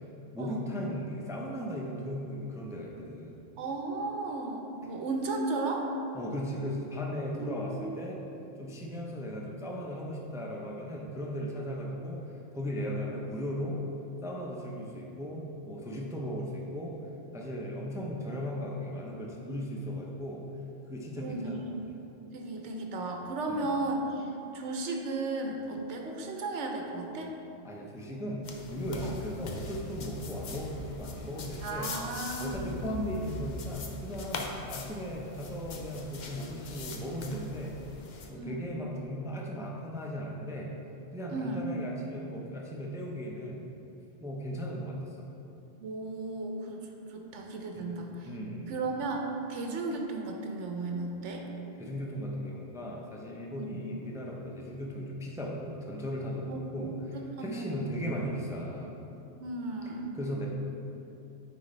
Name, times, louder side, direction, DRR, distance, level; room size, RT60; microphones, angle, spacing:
voice 1, 0.3-3.4 6.1-8.2 8.6-13.8 14.2-17.0 17.3-20.4 20.9-21.9 23.5-23.7 27.6-31.9 32.4-37.8 38.3-40.7 41.1-43.7 44.2-45.3 47.8-47.9 48.2-48.8 51.7-58.9 60.1-60.5, equal, 5° right, -2 dB, 0.3 m, -37 dB
voice 2, 3.6-5.9 7.3-8.0 21.2-21.7 22.3-27.3 29.0-29.2 31.6-33.0 38.3-38.6 41.3-41.6 45.8-48.3 48.7-51.5 53.5-53.8 56.5-58.1 59.4-60.1, right 2 dB, 85° right, 1 dB, 1.0 m, -35 dB
sound 1, 28.4-38.3, left 3 dB, 55° left, 0.6 m, -41 dB
8.9 x 3.9 x 3.2 m, 2.9 s
omnidirectional pair, 1.2 m